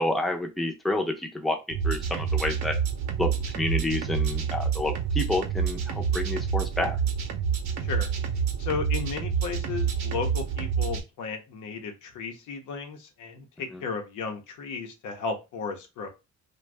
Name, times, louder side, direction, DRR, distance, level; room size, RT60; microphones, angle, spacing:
voice 1, 0.0-1.6 1.8-2.8 3.2-7.0 13.7-13.8, left 1 dB, ahead, 3 dB, 0.5 m, -29 dB
sound 1, 1.7-11.0, right 7 dB, 65° right, 0.7 m, -28 dB
voice 2, 8.6-16.1, left 5 dB, 85° left, 4 dB, 0.8 m, -34 dB
2.5 x 2.2 x 3.2 m, 0.27 s
cardioid pair, 90°, 30 cm